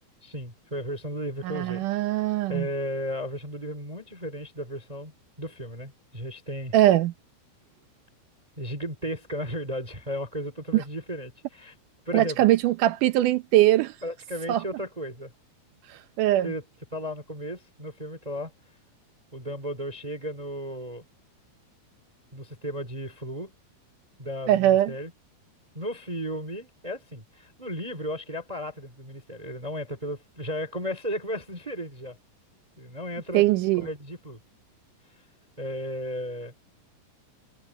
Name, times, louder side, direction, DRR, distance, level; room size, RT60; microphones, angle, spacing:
voice 1, 0.2-1.9 2.5-5.1 5.4-6.7 8.6-11.7 12.0-12.4 14.0-15.3 16.4-16.6 16.9-18.5 19.3-21.0 22.3-23.5 24.2-25.1 25.7-32.2 32.8-33.4 33.8-34.4 35.6-36.5, equal, 10° right, 2.6 m, -34 dB
voice 2, 1.4-2.7 6.7-7.1 10.7-10.8 12.1-13.9 14.5-14.6 15.9-16.5 24.5-24.9 33.3-33.9, right 14 dB, 80° right, 1.9 m, -21 dB
omnidirectional pair, 4.7 m